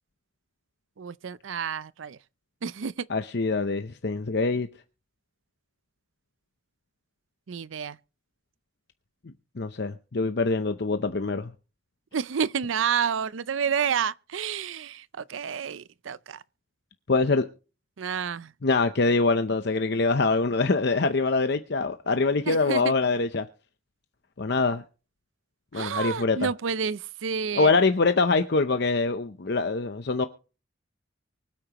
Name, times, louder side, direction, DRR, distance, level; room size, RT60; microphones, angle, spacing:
voice 1, 1.0-2.2 2.6-2.9 7.5-8.0 12.1-16.4 18.0-18.5 22.5-22.9 25.7-27.7, right 7 dB, 80° right, 0.5 m, -29 dB
voice 2, 3.1-4.7 9.6-11.5 17.1-17.5 18.6-23.5 24.4-24.8 25.7-26.5 27.6-30.3, left 3 dB, 55° left, 0.7 m, -24 dB
24.5 x 8.7 x 3.0 m
head